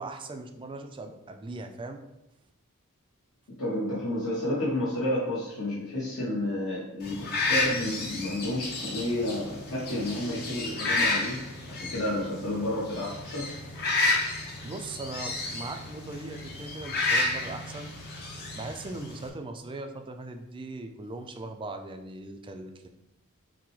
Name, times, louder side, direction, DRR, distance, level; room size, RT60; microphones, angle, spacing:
voice 1, 0.0-2.0 14.6-17.9 18.5-22.9, right 2 dB, 20° right, 5 dB, 0.3 m, -39 dB
voice 2, 3.6-13.5, left 1 dB, 65° left, -8 dB, 1.0 m, -31 dB
sound 1, 7.0-19.3, left 2 dB, 45° left, 0.7 m, -31 dB
5.9 x 2.1 x 3.1 m, 0.88 s
head